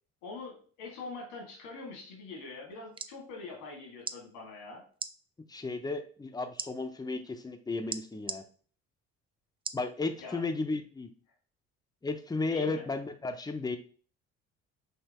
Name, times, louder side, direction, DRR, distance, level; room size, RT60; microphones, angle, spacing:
voice 1, 0.2-4.8 10.2-10.4 12.5-12.9, left 3 dB, 90° left, 0 dB, 2.0 m, -44 dB
sound 1, 2.7-3.2 4.0-4.2 4.9-5.1 6.6-6.7 7.9-8.4 9.6-9.9 10.4-10.5, right 5 dB, 20° right, 0.3 m, -37 dB
voice 2, 5.5-8.4 9.7-11.1 12.0-13.8, left 3 dB, 15° left, 7 dB, 0.7 m, -34 dB
5.5 x 2.8 x 3.0 m, 0.42 s
supercardioid pair, 80°, 30 cm